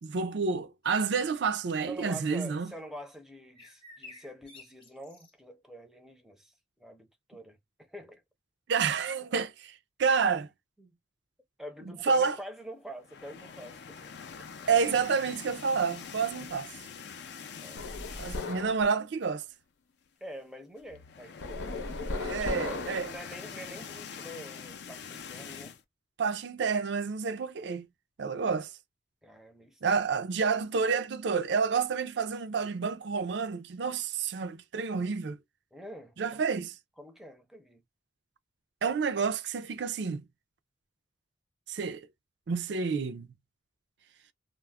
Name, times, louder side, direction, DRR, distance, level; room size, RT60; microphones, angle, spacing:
voice 1, 0.0-2.7 8.7-10.5 11.9-12.4 14.7-16.7 18.2-19.4 22.2-23.1 26.2-27.9 28.2-28.7 29.8-35.4 36.2-36.7 38.8-40.3 41.7-42.1 42.5-43.3, right 5 dB, 60° right, 0.4 m, -29 dB
sound 1, 0.8-1.4 3.5-5.3, left 3 dB, 25° left, 0.8 m, -52 dB
voice 2, 1.9-8.2 10.8-11.0 11.6-14.1 17.6-18.3 20.2-25.8 29.2-29.8 35.7-36.5 37.0-37.8, equal, ahead, 0.5 m, -46 dB
sound 2, 13.0-18.8 19.2-19.4 19.6-19.7 20.8-25.8, left 6 dB, 55° left, 0.4 m, -45 dB
sound 3, 17.8-18.8 21.4-23.2, left 2 dB, 90° left, 0.8 m, -36 dB
2.3 x 2.0 x 3.3 m
head